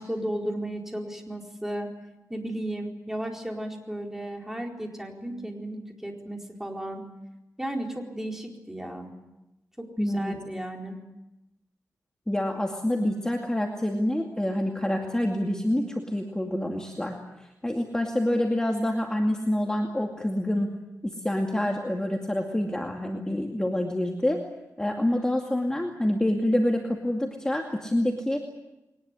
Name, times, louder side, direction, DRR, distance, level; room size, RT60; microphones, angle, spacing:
voice 1, 0.0-1.9 2.3-7.0 7.6-9.1 9.8-11.0, right 1 dB, 5° right, 1 dB, 4.4 m, -34 dB
voice 2, 10.0-10.3 12.3-17.2 17.6-20.7 21.0-24.4 24.8-28.4, left 1 dB, 10° left, 1 dB, 2.4 m, -27 dB
22.0 x 20.0 x 9.9 m, 0.96 s
wide cardioid pair, 115°, 6 cm